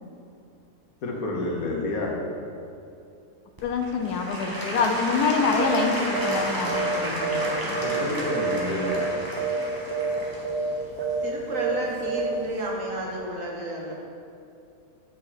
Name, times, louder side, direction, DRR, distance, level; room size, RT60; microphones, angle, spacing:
voice 1, 1.0-2.2 7.7-9.2, left 2 dB, 65° left, 0 dB, 1.4 m, -30 dB
voice 2, 3.6-7.9, left 4 dB, 80° left, 4 dB, 1.2 m, -26 dB
Applause / Crowd, 3.6-12.5 13.1-13.2, equal, 15° right, 0.9 m, -32 dB
sound 1, 5.6-5.9 6.1-6.4 6.7-8.0 8.3-8.6 8.8-9.1 9.4-9.6 9.9-10.2 10.4-10.7 11.0-11.3 11.5-11.8 12.1-12.3, right 4 dB, 75° right, 1.3 m, -27 dB
voice 3, 11.1-13.9, right 1 dB, 60° right, -2 dB, 1.5 m, -32 dB
8.6 x 5.1 x 4.1 m, 2.6 s
omnidirectional pair, 1.6 m